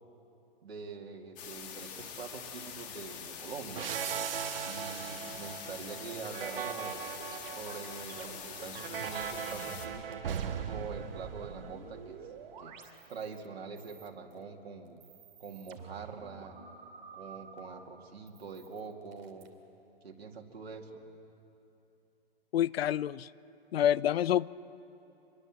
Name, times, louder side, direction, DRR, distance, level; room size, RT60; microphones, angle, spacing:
voice 1, 0.6-3.9 4.6-7.0 7.6-12.2 12.6-15.0 15.4-16.5 17.1-19.5 20.0-21.0, right 5 dB, 90° right, 1 dB, 2.5 m, -44 dB
sound 1, 1.4-9.9, left 7 dB, 25° left, 2.2 m, -45 dB
sound 2, 3.7-12.2, right 8 dB, 65° right, 1.6 m, -39 dB
sound 3, 6.9-10.9 11.1-13.5 13.8-14.4 14.9-17.6 18.3-19.5, right 6 dB, 50° right, 2.7 m, -50 dB
voice 2, 22.5-23.3 23.7-24.5, left 11 dB, 75° left, 21 dB, 0.6 m, -27 dB
27.0 x 22.5 x 7.6 m, 2.9 s
hypercardioid pair, 155°, 30 cm